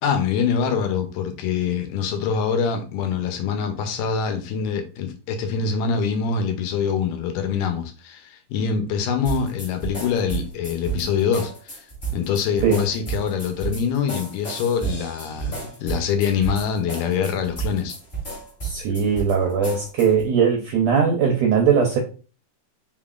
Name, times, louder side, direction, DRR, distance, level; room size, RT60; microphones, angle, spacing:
voice 1, 0.0-11.9 12.1-17.9, left 6 dB, 80° left, 6 dB, 2.2 m, -24 dB
sound 1, 9.2-20.3, right 5 dB, 30° left, 1.1 m, -32 dB
voice 2, 18.6-22.0, right 6 dB, 80° right, 1 dB, 1.6 m, -20 dB
5.1 x 3.7 x 2.4 m, 0.36 s
omnidirectional pair, 3.9 m